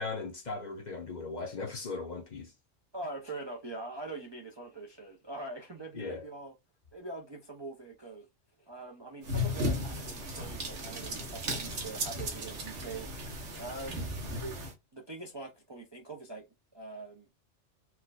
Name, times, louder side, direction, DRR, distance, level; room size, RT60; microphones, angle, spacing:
voice 1, 0.0-2.5 6.0-6.2, left 3 dB, 45° left, 0.7 m, -38 dB
voice 2, 2.9-6.5 6.9-8.3 8.6-14.1 14.4-14.6 14.9-16.5 16.7-17.3, right 2 dB, 35° right, 0.5 m, -43 dB
sound 1, 9.2-14.7, left 1 dB, 75° right, 1.4 m, -35 dB
4.5 x 2.2 x 2.4 m
omnidirectional pair, 1.2 m